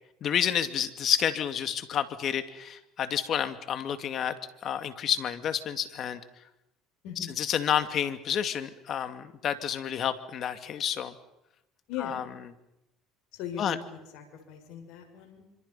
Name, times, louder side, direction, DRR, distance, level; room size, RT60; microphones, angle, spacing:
voice 1, 0.2-4.4 4.6-6.2 7.4-11.1 12.0-12.3 13.6-13.8, left 9 dB, 50° left, 10 dB, 2.3 m, -29 dB
voice 2, 7.0-7.4 11.9-12.2 13.3-15.4, left 8 dB, 70° left, 5 dB, 6.3 m, -39 dB
27.5 x 26.0 x 5.7 m, 0.86 s
supercardioid pair, 85°, 0 cm